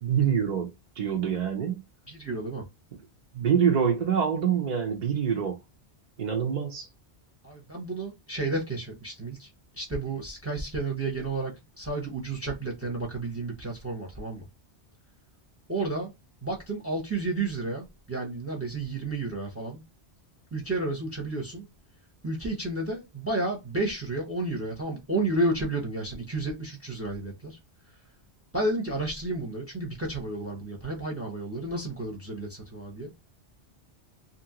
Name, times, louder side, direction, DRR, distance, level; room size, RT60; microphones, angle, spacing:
voice 1, 0.0-1.8 3.3-5.6 6.2-6.9, right 7 dB, 55° right, 0.6 m, -26 dB
voice 2, 2.1-2.6 7.4-9.5 9.7-14.5 15.7-16.1 16.4-19.8 20.5-21.7 22.2-27.6 28.5-33.1, right 2 dB, 15° right, 0.7 m, -31 dB
2.8 x 2.6 x 2.8 m
omnidirectional pair, 1.1 m